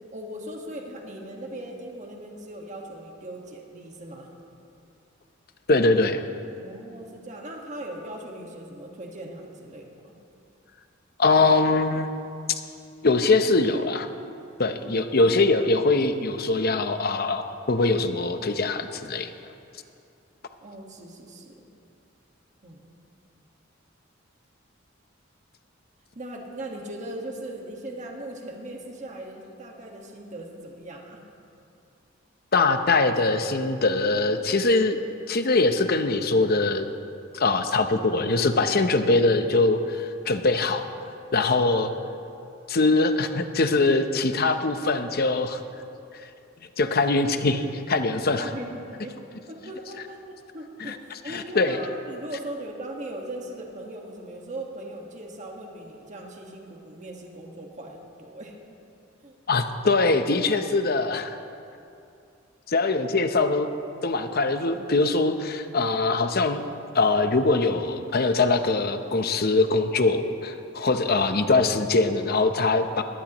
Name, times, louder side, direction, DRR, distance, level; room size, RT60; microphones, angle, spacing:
voice 1, 0.1-4.3 6.6-10.1 14.7-15.3 20.6-21.6 22.6-22.8 26.1-31.2 37.4-37.6 48.4-49.2 49.5-58.5 59.2-59.4 71.0-71.2, right 1 dB, 40° right, 0 dB, 1.6 m, -39 dB
voice 2, 5.7-6.2 11.2-12.1 13.0-14.1 14.6-17.4 17.7-19.3 32.5-35.0 35.3-36.9 37.3-40.9 41.3-41.9 42.7-45.6 46.8-48.5 50.8-51.0 51.3-51.8 59.5-61.4 62.7-63.7 64.0-66.7 66.9-73.0, left 3 dB, 50° left, 8 dB, 0.8 m, -22 dB
21.0 x 16.0 x 3.1 m, 2.6 s
head